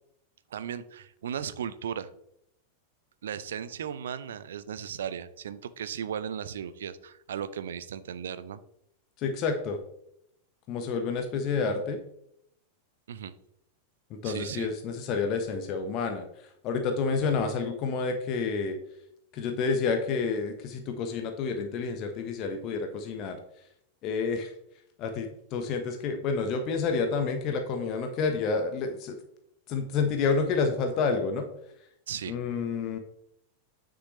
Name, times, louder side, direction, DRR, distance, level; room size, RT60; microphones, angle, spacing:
voice 1, 0.5-2.1 3.2-8.6 13.1-13.3 14.2-14.7 32.1-32.4, right 8 dB, 65° right, 14 dB, 0.5 m, -36 dB
voice 2, 9.2-9.8 10.7-12.0 14.1-16.2 16.6-18.8 19.3-23.4 24.0-24.5 25.0-29.2 29.7-31.5 32.3-33.0, left 5 dB, 40° left, 6 dB, 1.0 m, -29 dB
9.4 x 6.2 x 3.1 m, 0.75 s
figure-of-eight pair, 90°, 0 cm